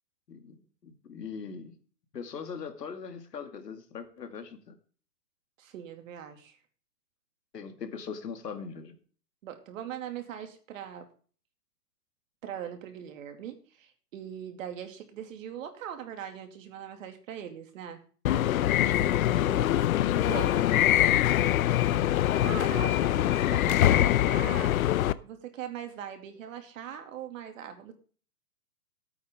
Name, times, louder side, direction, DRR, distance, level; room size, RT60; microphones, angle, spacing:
voice 1, 0.3-1.7 2.1-4.8 7.5-8.9 18.4-19.8 20.2-21.0, left 6 dB, 90° left, 7 dB, 2.5 m, -40 dB
voice 2, 5.6-6.6 9.4-11.1 12.4-18.0 20.2-20.5 22.4-24.7 25.2-27.9, right 9 dB, 55° right, 6 dB, 2.6 m, -41 dB
sound 1, 18.3-25.1, left 12 dB, 60° left, 0.8 m, -24 dB
16.5 x 8.8 x 3.7 m, 0.42 s
hypercardioid pair, 140°, 47 cm